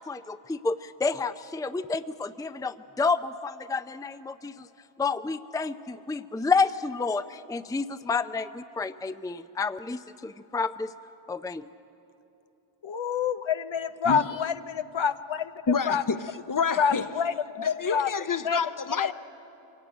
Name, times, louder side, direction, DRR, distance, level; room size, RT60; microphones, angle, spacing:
voice 1, 0.0-4.7 5.0-10.9 11.3-11.6, left 4 dB, 10° left, 0.5 m, -30 dB
voice 2, 12.8-15.5 15.9-16.0 16.8-18.1 18.4-18.6 19.0-19.1, left 7 dB, 70° left, 0.7 m, -27 dB
voice 3, 14.1-14.4 15.7-17.1 17.6-19.1, left 5 dB, 40° left, 0.9 m, -28 dB
23.5 x 16.5 x 9.2 m
cardioid pair, 60°, 49 cm